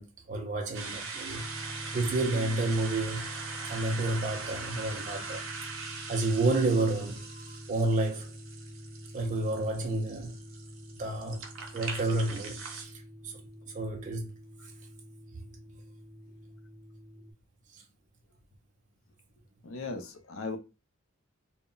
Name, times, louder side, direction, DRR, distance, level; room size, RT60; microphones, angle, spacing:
voice 1, 0.0-1.5 1.9-3.3 3.7-5.7 6.1-7.2 7.7-8.3 9.1-10.4 11.0-11.5 11.7-13.4 13.7-14.3 17.7-17.8, right 2 dB, 35° right, 0.4 m, -30 dB
sound 1, 0.7-12.8, right 4 dB, 70° right, 0.6 m, -41 dB
sound 2, 1.3-17.3, equal, 5° right, 0.7 m, -47 dB
voice 2, 19.6-20.6, left 3 dB, 70° left, 0.5 m, -39 dB
2.0 x 2.0 x 3.7 m
head